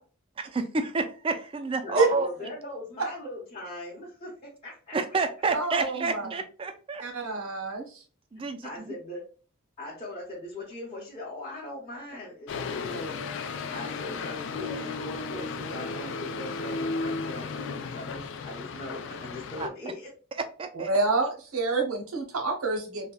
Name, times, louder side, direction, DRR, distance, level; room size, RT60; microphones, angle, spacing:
voice 1, 0.4-2.3 4.9-7.0 8.3-8.9 19.6-19.7 20.6-20.9, right 4 dB, 25° right, 8 dB, 0.3 m, -29 dB
voice 2, 1.8-5.2 8.4-9.3 9.8-20.1, left 1 dB, 25° left, -8 dB, 0.8 m, -40 dB
voice 3, 5.5-6.3 7.0-7.8 20.7-23.1, right 3 dB, 80° right, 3 dB, 0.9 m, -27 dB
sound 1, 12.5-19.7, left 4 dB, 60° left, 0.3 m, -34 dB
3.3 x 2.1 x 2.3 m, 0.38 s
head